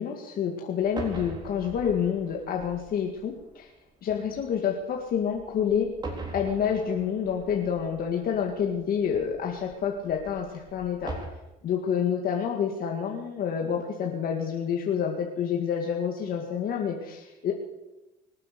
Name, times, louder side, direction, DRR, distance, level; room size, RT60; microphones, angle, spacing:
voice 1, 0.0-3.7 4.0-5.9 6.3-11.1 11.6-17.5, left 7 dB, 60° left, 1 dB, 2.0 m, -28 dB
sound 1, 0.8-11.3, right 2 dB, 25° right, 4.0 m, -43 dB
24.5 x 8.4 x 6.9 m, 1.0 s
cardioid pair, 110°, 17 cm